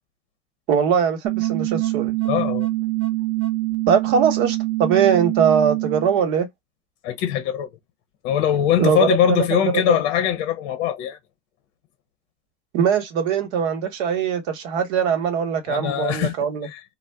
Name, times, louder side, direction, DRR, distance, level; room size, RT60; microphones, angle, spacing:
voice 1, 0.7-2.1 3.9-6.5 8.8-9.5 9.9-10.0 12.7-16.7, right 7 dB, 60° right, 1.1 m, -21 dB
sound 1, 1.2-6.2, right 19 dB, 40° right, 0.8 m, -24 dB
voice 2, 2.3-2.7 7.0-7.7 8.2-11.2 15.7-16.3 16.6-16.8, left 10 dB, 55° left, 0.7 m, -22 dB
2.5 x 2.0 x 3.3 m
hypercardioid pair, 105°, 36 cm